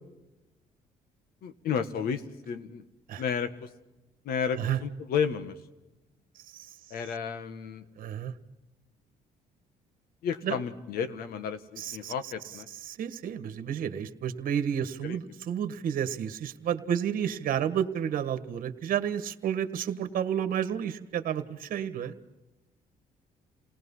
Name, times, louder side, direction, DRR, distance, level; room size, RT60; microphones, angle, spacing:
voice 1, 1.4-2.9 3.2-3.7 4.2-5.6 6.9-7.8 10.2-12.7 15.0-15.2, left 7 dB, 80° left, 11 dB, 1.7 m, -32 dB
voice 2, 8.0-8.3 10.4-10.6 11.8-12.1 12.8-22.1, right 9 dB, 65° right, 10 dB, 1.6 m, -31 dB
29.0 x 19.0 x 5.6 m, 1.0 s
cardioid pair, 120°, 15 cm